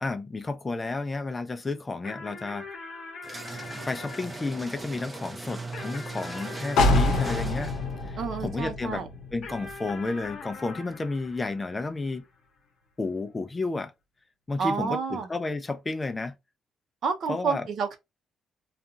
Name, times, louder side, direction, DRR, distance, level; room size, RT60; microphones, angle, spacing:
voice 1, 0.0-2.7 3.9-7.7 8.0-9.0 9.3-12.2 13.0-13.9 14.5-16.3 17.3-17.7, left 3 dB, 25° left, 0.4 m, -32 dB
sound 1, 2.0-8.7 9.4-12.2, left 4 dB, 60° left, 0.9 m, -43 dB
sound 2, 3.2-8.0, right 3 dB, 20° right, 0.6 m, -39 dB
sound 3, 6.8-10.5 10.9-11.0, left 2 dB, 85° left, 0.7 m, -26 dB
voice 2, 8.2-9.1 14.6-15.3 17.0-18.0, right 5 dB, 65° right, 0.7 m, -29 dB
2.7 x 2.4 x 2.4 m
cardioid pair, 90°, 0 cm